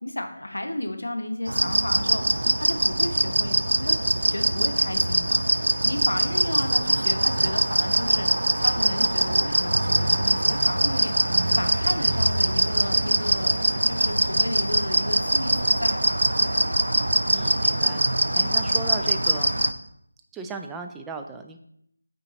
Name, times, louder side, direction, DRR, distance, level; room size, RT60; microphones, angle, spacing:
voice 1, 0.0-16.7, left 1 dB, 85° left, 6 dB, 0.9 m, -33 dB
sound 1, 1.5-19.7, right 1 dB, 90° right, 0.5 m, -23 dB
voice 2, 17.3-18.0 18.4-19.6 20.3-21.6, right 3 dB, 5° right, 4 dB, 0.3 m, -36 dB
8.6 x 3.9 x 3.0 m, 0.73 s
figure-of-eight pair, 165°, 0 cm